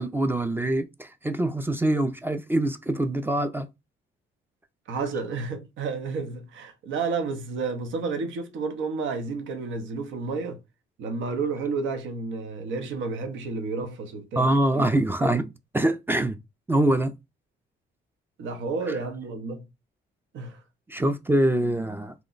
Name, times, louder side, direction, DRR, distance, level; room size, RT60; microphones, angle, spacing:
voice 1, 0.0-3.7 14.4-15.5 15.7-16.4 16.7-17.1 18.9-19.0 20.9-22.1, right 1 dB, 10° right, 0.3 m, -24 dB
voice 2, 4.9-10.6 11.0-14.8 15.2-15.3 18.4-19.7 20.3-20.6, right 4 dB, 75° right, 0.7 m, -31 dB
3.0 x 2.1 x 3.8 m
cardioid pair, 90°, 20 cm